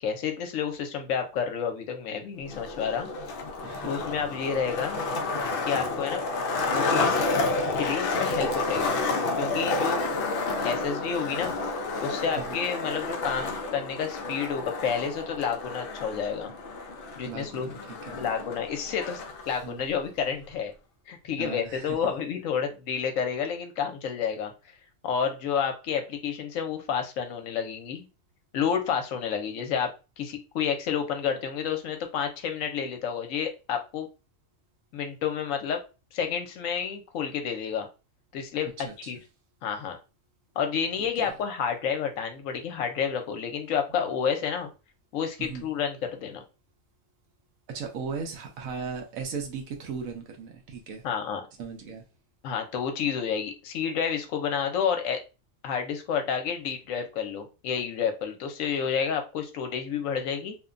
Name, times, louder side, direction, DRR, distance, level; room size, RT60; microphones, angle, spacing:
voice 1, 0.0-3.1 3.8-5.0 5.7-6.2 6.6-7.2 7.8-8.9 9.4-10.0 10.6-11.5 12.0-16.5 17.2-17.7 18.2-20.7 21.1-24.5 25.0-28.1 28.5-34.1 34.9-35.8 36.1-37.9 38.3-38.7 39.1-39.2 39.6-40.0 40.6-44.7 45.1-46.4 51.0-51.4 52.4-55.2 55.6-60.6, left 7 dB, 75° left, 1.0 m, -30 dB
Skateboard, 2.4-19.5, left 3 dB, 60° left, 0.6 m, -30 dB
voice 2, 17.2-18.2 19.6-19.9 21.4-22.1 38.8-39.1 41.0-41.3 43.9-44.1 45.4-45.7 47.7-51.0 51.6-52.0, right 5 dB, 90° right, 1.1 m, -37 dB
2.9 x 2.2 x 2.4 m
omnidirectional pair, 1.4 m